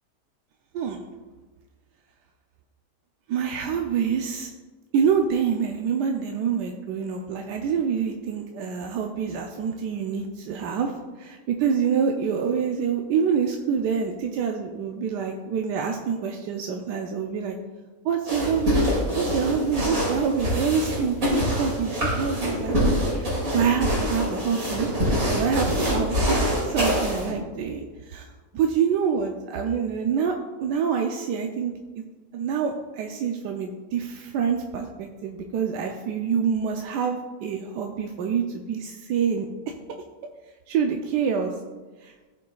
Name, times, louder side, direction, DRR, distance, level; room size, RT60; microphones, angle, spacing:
voice 1, 3.3-4.5 4.9-10.9 11.6-17.5 18.1-18.8 19.1-22.7 23.1-24.9 25.3-30.3 30.6-32.0 32.3-39.5 40.7-41.5 42.0-42.1, right 7 dB, 85° right, 3 dB, 1.2 m, -26 dB
sound 1, 18.3-27.3, equal, 55° right, 2.8 m, -25 dB
15.0 x 5.3 x 2.3 m, 1.3 s
omnidirectional pair, 1.8 m